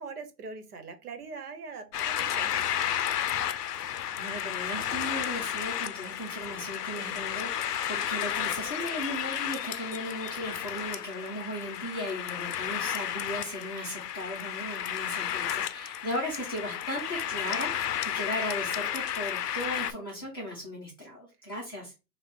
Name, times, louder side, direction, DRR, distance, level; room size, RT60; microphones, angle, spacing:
voice 1, 0.0-3.2, right 4 dB, 65° right, 7 dB, 1.1 m, -43 dB
sound 1, 1.9-19.9, left 10 dB, 70° left, 0.5 m, -32 dB
voice 2, 3.7-21.9, equal, 15° left, -7 dB, 0.7 m, -37 dB
4.5 x 2.3 x 3.8 m, 0.29 s
hypercardioid pair, 170°, 49 cm